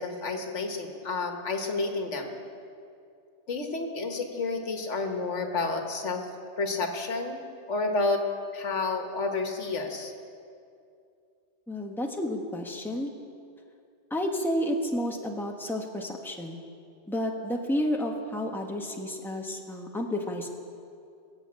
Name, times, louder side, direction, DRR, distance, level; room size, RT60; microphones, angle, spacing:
voice 1, 0.0-2.3 3.5-6.3 6.6-7.4 7.7-8.2 8.5-10.1, left 3 dB, 85° left, 4 dB, 1.7 m, -30 dB
voice 2, 11.7-13.1 14.1-16.6 17.1-20.5, left 1 dB, ahead, 1 dB, 1.2 m, -31 dB
21.5 x 7.3 x 8.7 m, 2.4 s
omnidirectional pair, 1.2 m